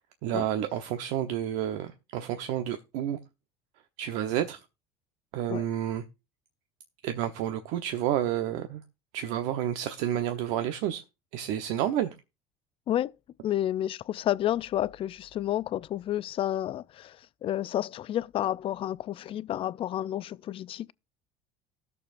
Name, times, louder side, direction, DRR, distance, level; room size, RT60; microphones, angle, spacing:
voice 1, 0.2-3.2 4.0-4.6 5.3-6.0 7.0-8.8 9.1-11.0 11.3-12.1, right 11 dB, 75° right, 0.9 m, -30 dB
voice 2, 13.4-17.2 17.4-20.9, left 12 dB, 45° left, 0.4 m, -30 dB
19.0 x 6.8 x 2.5 m
supercardioid pair, 95°, 13 cm